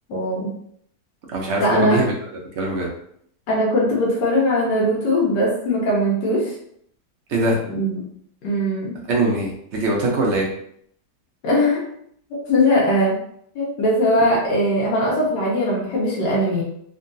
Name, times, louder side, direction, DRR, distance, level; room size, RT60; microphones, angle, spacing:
voice 1, 0.1-0.5 1.6-2.0 3.5-6.5 7.7-8.1 8.4-9.0 11.4-11.8 12.5-13.2 13.5-16.6, equal, 90° left, -5 dB, 1.4 m, -20 dB
voice 2, 1.3-2.1 2.6-2.9 7.3-7.6 9.1-10.5, right 2 dB, 60° right, -2 dB, 0.7 m, -21 dB
3.6 x 2.2 x 2.6 m, 0.68 s
omnidirectional pair, 1.8 m